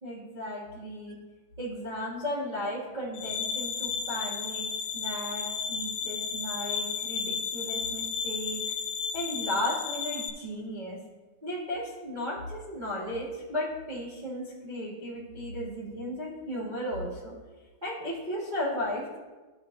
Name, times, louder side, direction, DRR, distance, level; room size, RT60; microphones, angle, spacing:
voice 1, 0.0-1.2 1.6-8.7 9.1-11.0 11.4-17.4 17.8-19.2, left 1 dB, 75° right, -7 dB, 0.4 m, -35 dB
sound 1, 3.1-10.3, left 6 dB, 80° left, 2.0 m, -33 dB
13.5 x 5.7 x 2.6 m, 1.3 s
omnidirectional pair, 3.6 m